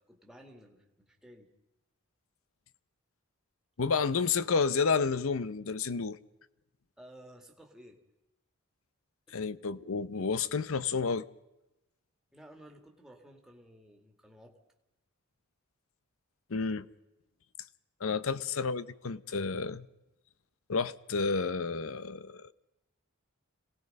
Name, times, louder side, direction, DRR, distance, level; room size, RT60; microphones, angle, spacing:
voice 1, 0.0-1.5 7.0-8.0 9.3-9.4 12.3-14.6 18.1-18.4, equal, ahead, 1.9 m, -55 dB
voice 2, 3.8-6.2 9.3-11.3 16.5-16.9 18.0-19.9 20.7-22.5, left 5 dB, 75° left, 0.7 m, -30 dB
26.5 x 18.0 x 5.4 m
head